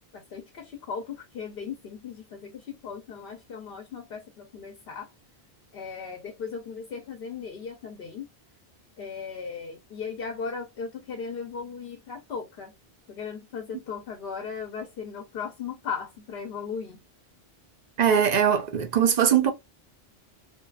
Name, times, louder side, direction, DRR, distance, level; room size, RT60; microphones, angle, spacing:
voice 1, 0.0-5.1 5.7-8.3 9.0-12.7 13.1-17.0, left 6 dB, 65° left, 0.8 m, -37 dB
voice 2, 18.0-19.5, right 8 dB, 55° right, 0.5 m, -21 dB
2.6 x 2.3 x 2.2 m
omnidirectional pair, 1.1 m